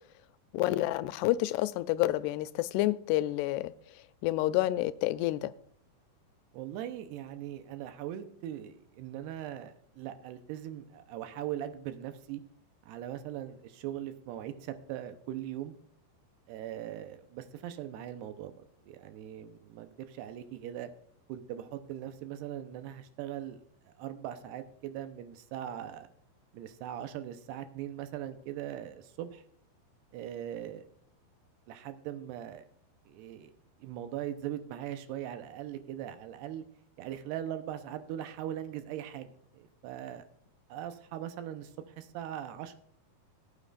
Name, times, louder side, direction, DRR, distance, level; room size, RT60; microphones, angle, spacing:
voice 1, 0.5-3.7 4.2-5.5, left 16 dB, 90° left, 14 dB, 2.6 m, -29 dB
voice 2, 6.5-12.4 12.8-15.7 16.5-18.5 18.8-20.9 21.3-23.6 23.9-26.1 26.5-29.4 30.1-30.8 31.7-32.6 33.1-33.5 33.8-36.6 37.0-40.2 40.7-42.8, right 11 dB, 85° right, 9 dB, 3.0 m, -40 dB
18.5 x 8.9 x 2.5 m, 0.66 s
omnidirectional pair, 4.7 m